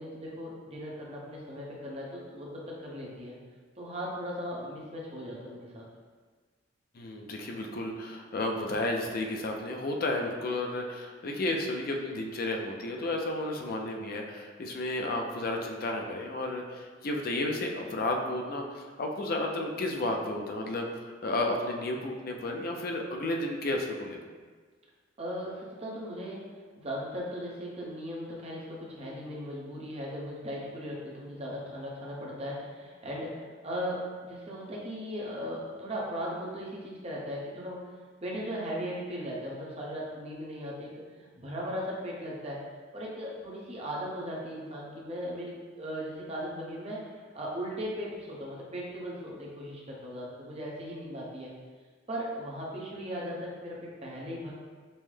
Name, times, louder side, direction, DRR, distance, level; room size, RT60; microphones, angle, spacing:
voice 1, 0.0-3.4 3.8-5.8 25.2-26.4 26.8-37.8 38.2-42.6 42.9-51.5 52.1-54.5, equal, 30° right, -4 dB, 0.8 m, -38 dB
voice 2, 6.9-24.2, left 2 dB, 50° left, 2 dB, 0.4 m, -32 dB
5.4 x 2.1 x 3.2 m, 1.5 s
head